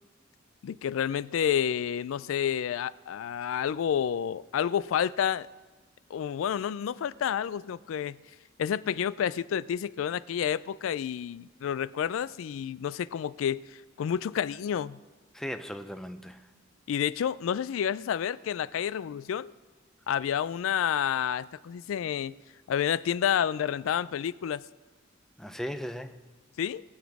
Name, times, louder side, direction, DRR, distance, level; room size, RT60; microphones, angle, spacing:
voice 1, 0.6-5.5 6.1-8.2 8.6-13.6 14.0-15.0 16.9-19.5 20.1-22.3 22.7-24.6 26.6-26.8, left 8 dB, 75° left, 0.3 m, -29 dB
voice 2, 15.3-16.5 25.4-26.3, equal, ahead, 0.4 m, -37 dB
20.5 x 7.2 x 4.7 m
head